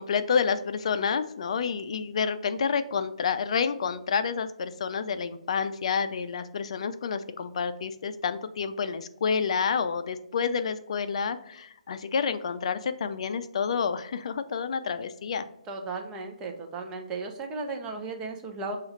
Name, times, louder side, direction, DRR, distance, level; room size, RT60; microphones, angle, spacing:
voice 1, 0.0-15.4, left 6 dB, 55° left, 11 dB, 0.4 m, -29 dB
voice 2, 15.7-18.8, right 3 dB, 15° right, 3 dB, 0.6 m, -35 dB
6.2 x 2.4 x 3.1 m, 0.76 s
figure-of-eight pair, 140°, 4 cm